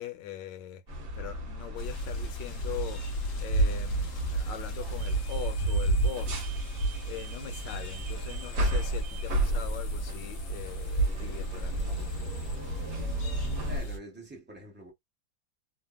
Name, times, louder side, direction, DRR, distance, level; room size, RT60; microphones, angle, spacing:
voice 1, 0.0-6.5 7.0-12.2, left 11 dB, 75° left, 1.2 m, -42 dB
sound 1, 0.9-13.8, equal, 50° right, 1.3 m, -35 dB
sound 2, 1.8-14.0, right 2 dB, 55° left, 0.9 m, -32 dB
voice 2, 13.7-14.9, right 1 dB, 15° right, 0.4 m, -45 dB
3.3 x 2.1 x 2.2 m
omnidirectional pair, 2.1 m